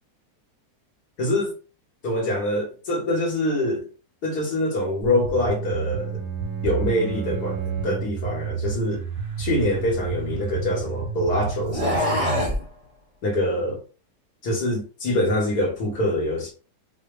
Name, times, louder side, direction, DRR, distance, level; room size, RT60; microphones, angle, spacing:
voice 1, 1.2-1.5 2.0-3.8 4.2-6.2 6.6-9.0 9.4-12.3 13.2-13.8 14.4-16.5, left 1 dB, 75° left, 2.2 m, -25 dB
sound 1, 5.0-12.4, right 7 dB, 90° right, 2.0 m, -30 dB
Bowed string instrument, 5.1-8.3, right 4 dB, 70° right, 2.0 m, -38 dB
sound 2, 9.4-10.9 11.6-12.6, left 1 dB, 25° right, 1.0 m, -27 dB
6.5 x 2.3 x 3.4 m
omnidirectional pair, 1.7 m